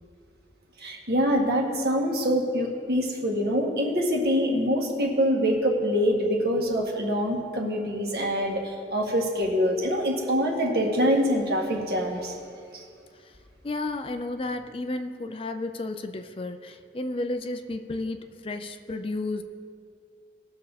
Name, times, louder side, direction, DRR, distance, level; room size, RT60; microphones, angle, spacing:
voice 1, 0.8-12.3 12.7-12.8, equal, 60° right, 0 dB, 1.8 m, -25 dB
voice 2, 13.6-19.4, left 2 dB, 30° left, 7 dB, 0.5 m, -32 dB
19.0 x 6.4 x 4.1 m, 2.2 s
head